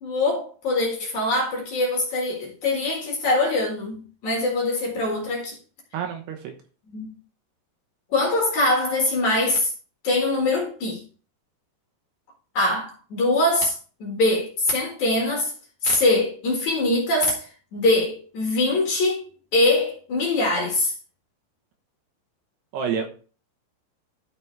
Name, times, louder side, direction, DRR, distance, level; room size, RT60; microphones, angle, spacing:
voice 1, 0.0-5.6 6.9-7.1 8.1-9.7 10.0-11.0 12.5-15.5 15.8-20.9, left 2 dB, 50° left, 2.6 m, -23 dB
voice 2, 5.9-6.5 22.7-23.1, right 7 dB, 75° right, 2.9 m, -28 dB
12.5 x 6.1 x 3.4 m
omnidirectional pair, 5.2 m